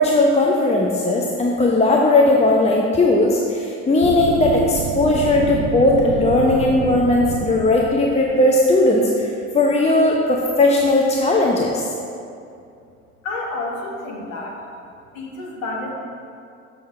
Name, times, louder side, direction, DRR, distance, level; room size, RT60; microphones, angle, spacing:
voice 1, 0.0-11.9, left 2 dB, 15° left, -1 dB, 0.8 m, -17 dB
sound 1, 4.0-8.8, right 9 dB, 45° right, 0.5 m, -28 dB
voice 2, 13.2-14.6 15.1-15.9, left 2 dB, 70° left, -2 dB, 1.4 m, -29 dB
7.0 x 6.2 x 4.7 m, 2.5 s
figure-of-eight pair, 55°, 40 cm